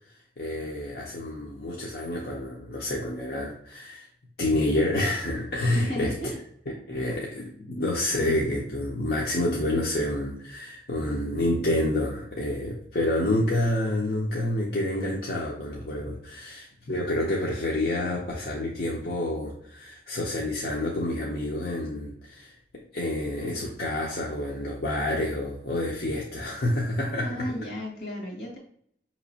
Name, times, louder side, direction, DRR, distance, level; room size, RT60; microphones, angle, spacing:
voice 1, 0.4-4.1 4.4-6.2 6.9-22.5 22.9-27.5, left 1 dB, 60° left, -3 dB, 0.7 m, -28 dB
voice 2, 5.7-6.4 27.2-28.6, left 1 dB, 85° left, -1 dB, 1.7 m, -34 dB
5.2 x 3.0 x 2.8 m, 0.65 s
head